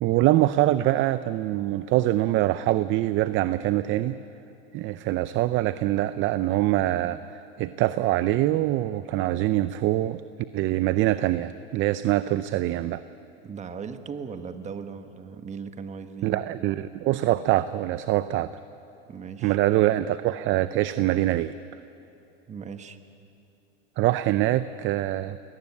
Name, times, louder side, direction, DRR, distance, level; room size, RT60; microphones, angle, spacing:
voice 1, 0.0-4.2 4.7-10.2 10.5-13.0 16.2-18.5 19.4-21.5 24.0-25.4, right 15 dB, 40° right, 14 dB, 0.6 m, -24 dB
voice 2, 13.4-16.4 19.1-19.6 22.5-23.0, right 6 dB, 20° right, 9 dB, 1.3 m, -38 dB
22.0 x 18.5 x 9.7 m, 2.8 s
supercardioid pair, 130°, 32 cm